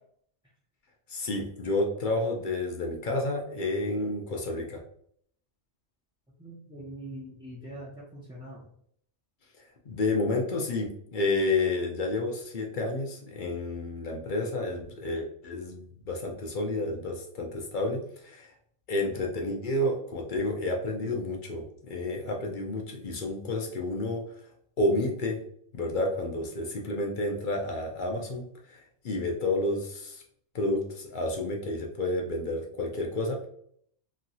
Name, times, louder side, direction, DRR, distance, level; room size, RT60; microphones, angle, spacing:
voice 1, 1.1-4.8 9.9-18.0 18.2-18.5 18.9-24.2 24.8-25.4 25.7-28.4 28.7-28.8 29.0-30.2 30.5-33.4, left 2 dB, 55° left, 1 dB, 0.6 m, -30 dB
voice 2, 6.4-8.7, right 1 dB, 5° right, -8 dB, 0.4 m, -43 dB
3.0 x 2.8 x 2.6 m, 0.66 s
omnidirectional pair, 1.3 m